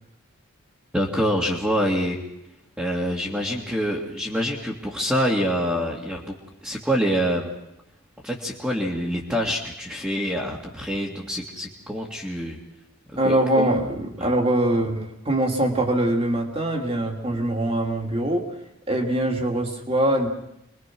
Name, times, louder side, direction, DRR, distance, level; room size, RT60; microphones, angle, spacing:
voice 1, 0.9-2.2 2.8-6.3 6.6-7.5 8.2-12.6 13.2-13.7, equal, 5° right, -5 dB, 2.3 m, -26 dB
voice 2, 13.2-18.5 18.9-20.3, right 1 dB, 25° right, 2 dB, 2.8 m, -23 dB
27.5 x 22.5 x 6.2 m, 0.84 s
head